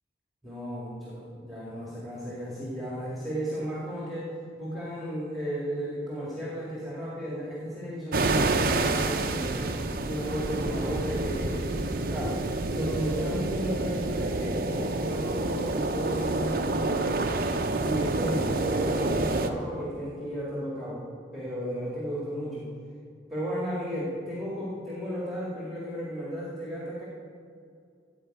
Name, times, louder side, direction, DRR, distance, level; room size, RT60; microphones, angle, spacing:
voice 1, 0.4-9.8 10.0-11.7 12.1-12.4 12.7-17.2 17.8-21.1 21.3-22.7 23.3-27.1, equal, ahead, -7 dB, 2.1 m, -34 dB
sound 1, 8.1-19.5, right 2 dB, 50° right, 0.7 m, -28 dB
14.5 x 5.1 x 8.9 m, 2.4 s
head